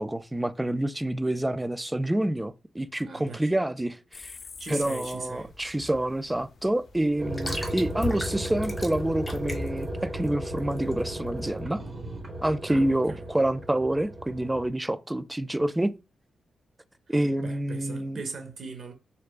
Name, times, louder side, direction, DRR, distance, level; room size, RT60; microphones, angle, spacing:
voice 1, 0.0-4.4 4.7-11.8 12.4-15.9 17.1-18.2, right 1 dB, 10° right, 0.3 m, -27 dB
voice 2, 3.0-3.5 4.6-5.5 12.7-13.3 17.4-18.9, right 4 dB, 60° right, 1.2 m, -39 dB
sound 1, 4.1-9.6, left 5 dB, 60° left, 0.5 m, -49 dB
sound 2, 4.9-11.5, left 1 dB, 15° left, 1.2 m, -38 dB
sound 3, 7.2-14.7, right 1 dB, 35° right, 1.4 m, -35 dB
4.4 x 3.7 x 2.4 m
cardioid pair, 95°, 0 cm